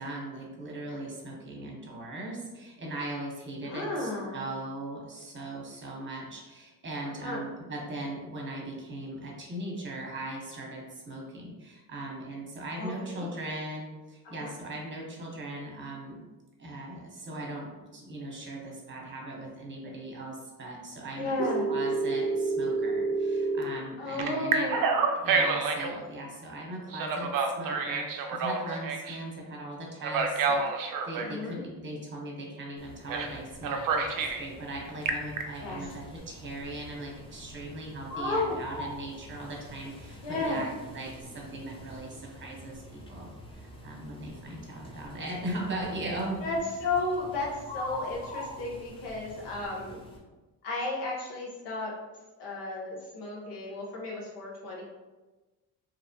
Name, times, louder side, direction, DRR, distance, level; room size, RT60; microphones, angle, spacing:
voice 1, 0.0-16.2 16.6-21.3 21.7-24.7 25.1-46.4, right 1 dB, 30° right, -2 dB, 1.0 m, -39 dB
voice 2, 3.6-4.5 7.2-7.4 12.8-13.3 14.2-14.5 21.2-21.7 24.0-24.9 31.2-31.6 35.6-35.8 38.1-38.6 40.2-40.6 46.4-46.6 46.8-50.1 50.6-51.9 52.4-54.8, left 2 dB, 85° left, -3 dB, 0.9 m, -33 dB
Telephone, 21.4-23.6 24.2-25.9 26.9-29.2 30.0-31.3 33.1-33.3 33.6-34.4 34.9-35.4, right 4 dB, 55° right, 0.5 m, -28 dB
sound 1, 32.8-50.2, left 1 dB, 15° left, 0.6 m, -45 dB
2.8 x 2.1 x 2.7 m, 1.2 s
supercardioid pair, 75°, 41 cm